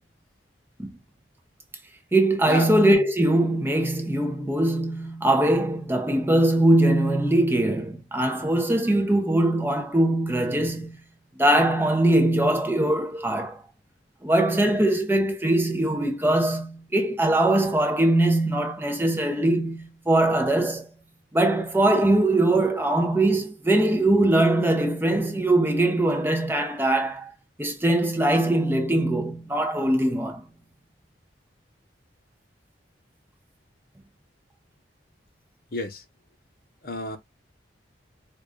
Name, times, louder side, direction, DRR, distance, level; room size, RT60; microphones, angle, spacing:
voice 1, 2.1-11.0 11.4-13.6 14.2-20.9 21.3-27.3 27.6-30.4, right 1 dB, 10° right, 0.6 m, -22 dB
voice 2, 35.7-36.0 36.8-37.2, left 2 dB, 50° left, 0.9 m, -30 dB
4.8 x 2.3 x 2.4 m
head